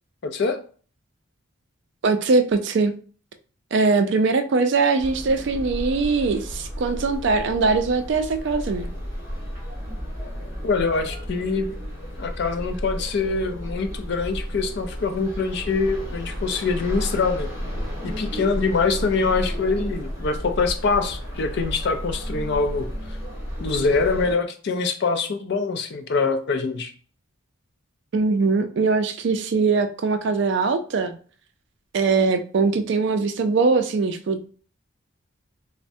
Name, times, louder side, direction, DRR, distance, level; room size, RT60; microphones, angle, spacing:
voice 1, 0.2-0.6 10.6-11.7 12.2-17.5 18.0-22.9 23.6-26.9, left 4 dB, 50° left, 7 dB, 0.4 m, -24 dB
voice 2, 2.0-2.9 3.7-8.9 28.1-31.2 31.9-34.5, right 4 dB, 55° right, 8 dB, 0.3 m, -21 dB
sound 1, 5.0-24.3, equal, 10° right, 1.4 m, -32 dB
3.2 x 2.1 x 2.6 m, 0.41 s
head